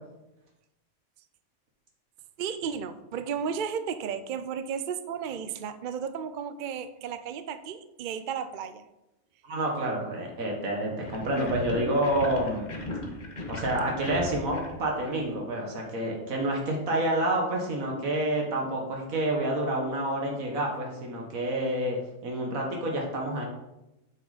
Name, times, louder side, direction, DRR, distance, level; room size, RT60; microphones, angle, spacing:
voice 1, 2.4-8.9, right 7 dB, 65° right, 11 dB, 0.5 m, -34 dB
voice 2, 9.5-12.7 13.5-23.4, right 1 dB, 80° right, 0 dB, 1.9 m, -28 dB
sound 1, 11.0-15.7, left 2 dB, 35° left, 1.1 m, -38 dB
7.7 x 6.3 x 4.0 m, 0.93 s
omnidirectional pair, 1.4 m